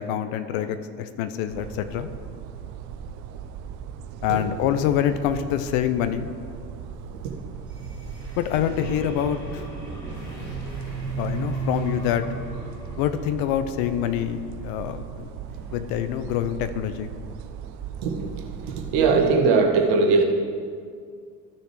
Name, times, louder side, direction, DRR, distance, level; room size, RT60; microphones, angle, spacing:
voice 1, 0.0-2.1 4.2-6.3 8.4-9.6 11.2-12.2 13.0-15.3 15.7-17.1, left 10 dB, 45° left, 10 dB, 0.7 m, -26 dB
sound 1, 1.5-19.3, right 7 dB, 40° right, 0.6 m, -38 dB
sound 2, 7.6-14.7 15.5-16.3, right 2 dB, 90° left, 1.6 m, -35 dB
voice 2, 18.0-18.4 18.6-20.2, right 4 dB, 55° right, 2 dB, 1.5 m, -20 dB
14.0 x 6.6 x 3.2 m, 2.1 s
figure-of-eight pair, 70°, 49 cm